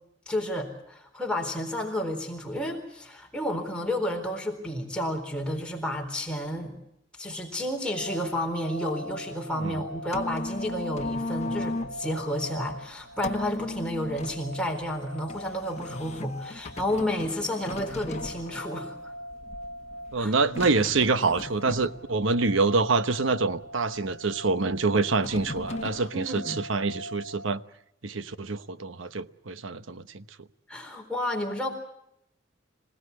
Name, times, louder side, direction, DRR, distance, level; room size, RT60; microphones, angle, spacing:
voice 1, 0.3-6.8 7.2-19.1 20.2-20.3 26.1-26.6 30.7-31.7, left 1 dB, 5° left, 4.1 m, -31 dB
sound 1, 7.8-27.5, equal, 45° right, 1.6 m, -42 dB
sound 2, 9.7-26.1, left 2 dB, 35° left, 1.5 m, -39 dB
voice 2, 20.1-27.6 28.0-30.2, right 3 dB, 80° right, 1.0 m, -26 dB
27.0 x 17.5 x 8.4 m
head